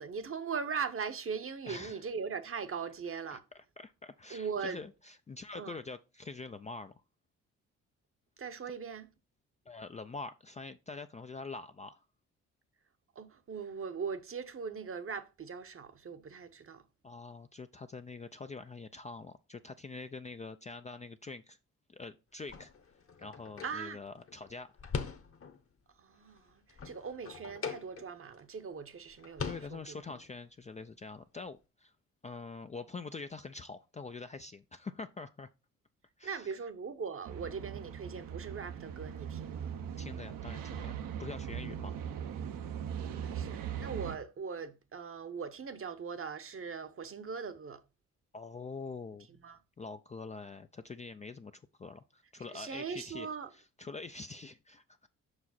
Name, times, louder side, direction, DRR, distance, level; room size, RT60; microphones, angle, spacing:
voice 1, 0.0-3.4 4.3-4.8 5.6-5.8 8.4-9.1 13.1-16.8 23.6-24.0 26.0-30.0 36.2-39.7 43.2-47.8 49.4-49.6 52.5-53.5, right 6 dB, 35° right, 0.9 m, -40 dB
voice 2, 1.7-2.0 3.3-3.4 3.8-7.0 9.7-12.1 17.0-21.6 21.9-22.7 23.2-24.7 29.4-31.9 32.2-35.5 36.2-36.5 40.0-42.0 48.3-49.3 49.8-53.3 53.5-55.1, left 4 dB, 20° left, 0.4 m, -45 dB
sound 1, 22.4-25.7 26.1-28.4 28.7-28.8 29.1-30.3, left 5 dB, 35° left, 1.0 m, -42 dB
sound 2, 37.2-44.2, right 8 dB, 65° right, 0.8 m, -40 dB
5.8 x 4.9 x 4.2 m
hypercardioid pair, 45°, 37 cm